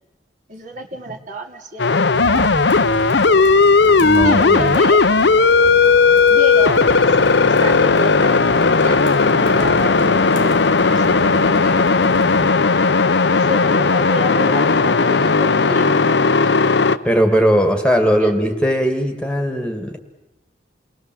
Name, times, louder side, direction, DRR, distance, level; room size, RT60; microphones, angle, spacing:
voice 1, 0.5-2.7 4.2-5.0 6.1-11.7 12.1-12.5 13.3-16.0 17.6-17.7 18.2-18.5, right 1 dB, 45° right, 3 dB, 2.5 m, -30 dB
sound 1, 1.8-17.0, left 4 dB, 75° left, 0.8 m, -15 dB
sound 2, 2.1-12.5, right 2 dB, 90° right, 1.8 m, -33 dB
voice 2, 4.0-4.7 17.0-20.0, equal, 5° left, 6 dB, 1.9 m, -18 dB
29.0 x 20.5 x 7.7 m, 1.1 s
head